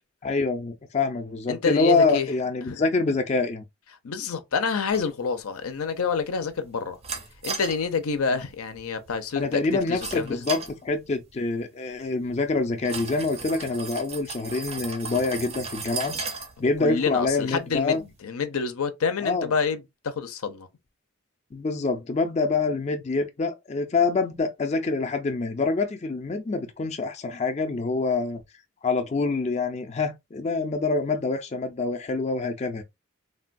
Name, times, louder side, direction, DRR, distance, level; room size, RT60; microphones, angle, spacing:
voice 1, 0.2-3.6 9.3-16.1 16.6-18.0 19.2-19.5 21.5-28.4 28.8-32.8, left 3 dB, 30° left, 0.4 m, -26 dB
voice 2, 1.5-2.3 2.7-2.8 4.0-7.0 7.4-10.4 16.6-19.8 20.0-20.7, left 5 dB, 80° left, 0.5 m, -28 dB
sound 1, 4.9-18.2, right 4 dB, 30° right, 0.4 m, -39 dB
3.3 x 2.2 x 2.5 m
head